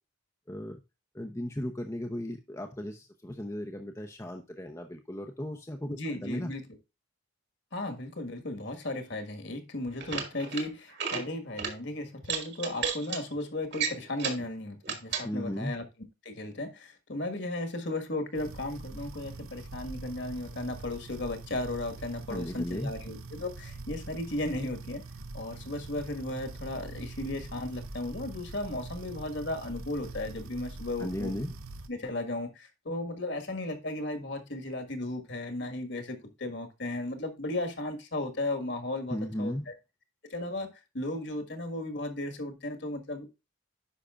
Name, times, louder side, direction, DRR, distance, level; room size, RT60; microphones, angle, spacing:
voice 1, 1.1-6.5 15.2-15.7 22.3-22.9 31.0-31.6 39.1-39.7, left 1 dB, 15° left, 0.6 m, -36 dB
voice 2, 5.9-6.6 7.7-15.8 16.2-25.0 25.3-31.3 31.9-39.5 40.3-40.7 40.9-43.3, left 2 dB, 55° left, 1.7 m, -35 dB
sound 1, 9.9-10.6 10.9-11.2 11.6-11.7 12.2-13.2 13.7-14.5 14.8-15.3, right 6 dB, 55° right, 1.9 m, -33 dB
sound 2, 18.3-31.9, right 2 dB, 85° right, 1.0 m, -44 dB
10.0 x 5.8 x 2.4 m
head